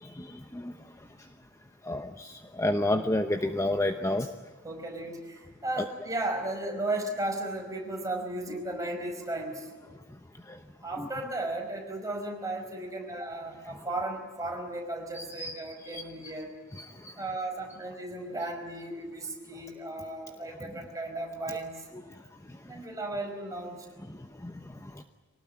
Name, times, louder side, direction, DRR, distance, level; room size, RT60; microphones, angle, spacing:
voice 1, 0.0-0.7 1.8-4.3 10.5-10.6 11.0-11.1 15.2-15.5 15.8-16.3 16.7-17.2 24.4-24.5 24.8-25.0, left 1 dB, 15° left, 7 dB, 0.8 m, -31 dB
voice 2, 4.6-9.7 10.8-16.5 17.2-21.8 22.6-23.8, right 2 dB, 15° right, 1 dB, 4.9 m, -35 dB
24.5 x 18.5 x 9.7 m, 1.4 s
head